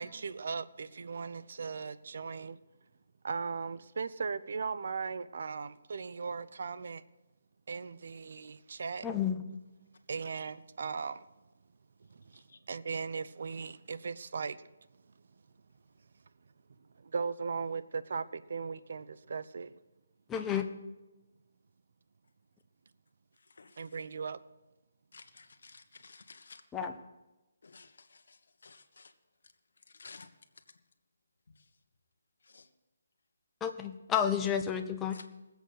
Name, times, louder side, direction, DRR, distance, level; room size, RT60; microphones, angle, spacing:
voice 1, 0.0-2.6 3.2-7.0 7.7-9.1 9.5-9.6 10.1-11.3 12.1-14.6 17.0-19.7 23.8-24.4, right 5 dB, 60° right, 0.6 m, -38 dB
voice 2, 9.0-9.4 20.3-20.7 26.7-27.0 33.6-35.2, left 8 dB, 10° left, 0.8 m, -31 dB
voice 3, 23.3-24.0 25.1-26.6 27.6-29.1 29.9-30.3 30.5-30.6 31.5-31.7 32.4-32.7 35.1-35.3, left 4 dB, 70° left, 1.4 m, -55 dB
19.5 x 8.0 x 6.5 m
hypercardioid pair, 165°, 0 cm